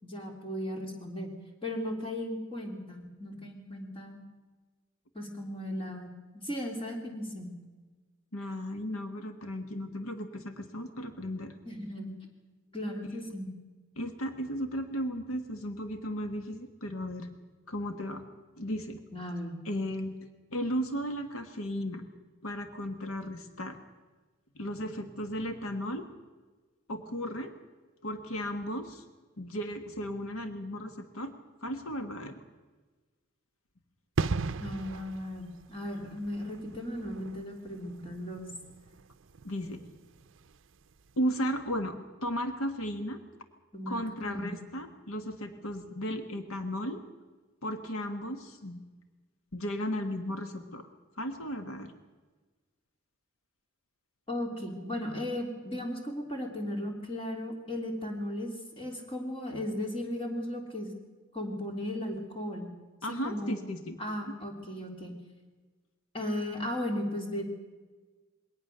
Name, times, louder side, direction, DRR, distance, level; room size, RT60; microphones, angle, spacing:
voice 1, 0.0-1.3 1.6-4.2 5.1-7.5 11.6-12.2 12.7-13.5 19.1-19.5 34.6-38.5 43.7-44.0 44.2-44.5 54.3-60.9 61.3-62.7 63.2-63.6 64.0-65.2 66.1-67.5, left 1 dB, 25° left, 2 dB, 3.2 m, -36 dB
voice 2, 8.3-11.5 14.0-17.3 17.7-18.2 18.6-19.0 19.6-20.1 20.5-22.0 22.4-23.8 24.5-26.0 26.9-27.5 28.0-29.0 29.4-31.3 31.6-32.4 39.4-39.8 41.2-42.0 42.2-43.2 43.9-47.0 47.6-48.8 49.5-50.9 51.2-51.9 63.0-64.0, equal, 85° left, 8 dB, 1.5 m, -35 dB
sound 1, 34.2-40.7 40.9-41.1, right 4 dB, 60° right, 0.6 m, -37 dB
22.0 x 18.0 x 6.8 m, 1.3 s
head